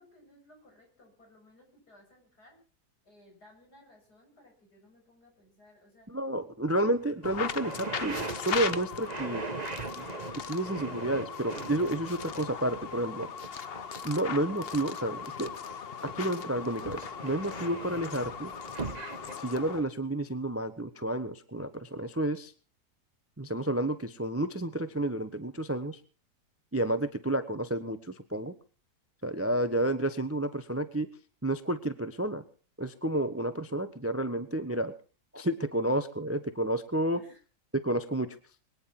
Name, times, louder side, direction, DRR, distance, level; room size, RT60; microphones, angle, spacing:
voice 1, 0.0-2.6 3.0-6.2 37.1-37.4, left 1 dB, 70° left, 1 dB, 8.1 m, -59 dB
voice 2, 6.1-9.4 10.0-10.1 10.5-13.3 14.0-15.5 16.0-18.5 19.4-22.5 23.4-26.0 26.7-28.5 29.2-31.1 31.4-32.4 32.8-34.9 35.3-37.2 37.7-38.4, right 1 dB, 10° right, 11 dB, 0.7 m, -30 dB
sound 1, 6.8-6.9 7.2-15.8 16.1-19.3, right 3 dB, 30° right, 1.2 m, -40 dB
sound 2, 7.2-19.9, left 7 dB, 45° left, 0.9 m, -39 dB
22.5 x 10.0 x 5.9 m, 0.39 s
omnidirectional pair, 1.8 m